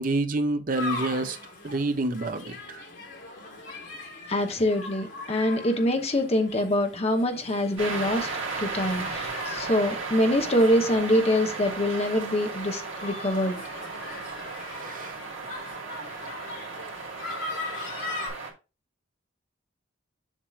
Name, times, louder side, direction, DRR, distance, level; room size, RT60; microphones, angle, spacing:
voice 1, 0.0-1.4 1.6-2.8 14.7-15.1, right 2 dB, 45° right, 0.7 m, -28 dB
sound 1, 0.7-18.3, left 2 dB, 65° left, 3.6 m, -40 dB
voice 2, 4.3-8.3 8.6-13.6, left 1 dB, 30° left, 0.9 m, -25 dB
sound 2, 7.8-18.5, right 4 dB, 80° right, 2.1 m, -35 dB
7.3 x 6.1 x 2.4 m
head